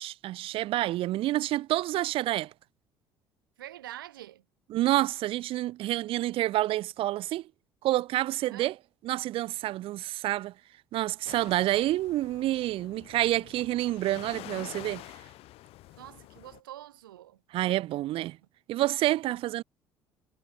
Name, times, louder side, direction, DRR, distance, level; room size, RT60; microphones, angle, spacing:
voice 1, 0.0-2.5 4.7-7.5 7.8-8.7 9.0-10.5 10.9-15.0 17.5-18.4 18.7-19.6, right 15 dB, 55° right, 0.7 m, -28 dB
voice 2, 3.6-4.4 8.4-8.7 15.9-17.4, right 13 dB, 80° right, 7.9 m, -45 dB
sound 1, 11.3-16.6, left 17 dB, 60° left, 7.0 m, -47 dB
figure-of-eight pair, 55°, 11 cm